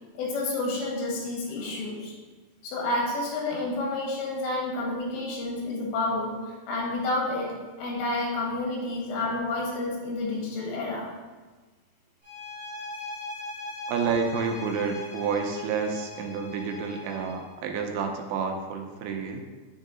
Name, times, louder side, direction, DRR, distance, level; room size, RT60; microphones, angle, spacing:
voice 1, 0.2-2.1 2.6-7.5 7.8-11.2, left 2 dB, 80° left, -2 dB, 3.6 m, -30 dB
sound 1, 12.2-17.5, left 2 dB, 60° right, 0.9 m, -40 dB
voice 2, 13.9-19.4, right 5 dB, 85° right, 4 dB, 3.0 m, -29 dB
9.0 x 3.8 x 3.7 m, 1.3 s
omnidirectional pair, 5.1 m